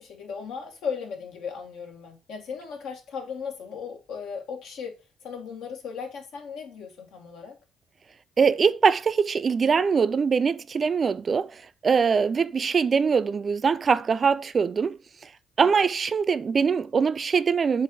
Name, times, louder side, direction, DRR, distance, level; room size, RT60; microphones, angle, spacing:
voice 1, 0.0-4.9 5.2-7.6 15.6-15.8, left 6 dB, 85° left, 1.6 m, -36 dB
voice 2, 8.4-15.0 15.6-17.8, right 5 dB, 35° right, 0.4 m, -22 dB
7.3 x 2.5 x 5.3 m
cardioid pair, 115°, 0 cm